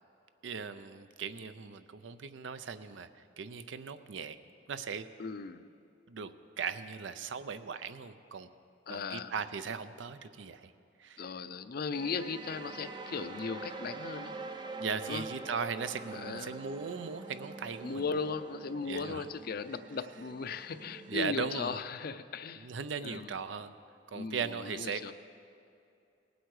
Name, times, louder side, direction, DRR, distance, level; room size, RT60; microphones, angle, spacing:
voice 1, 0.4-3.1 3.4-4.4 4.7-5.1 6.1-6.3 6.6-8.5 8.9-10.7 11.0-11.2 14.8-18.0 18.8-19.3 21.1-21.8 22.6-23.7 24.1-25.1, right 6 dB, 90° right, 12 dB, 0.5 m, -38 dB
voice 2, 5.2-5.7 8.9-9.3 11.2-14.3 15.1-15.2 16.1-16.6 17.8-22.7 23.0-23.4 24.1-25.1, left 5 dB, 55° left, 12 dB, 0.5 m, -37 dB
sound 1, 11.9-21.6, right 3 dB, 25° right, 0.5 m, -45 dB
18.5 x 8.0 x 4.8 m, 2.6 s
head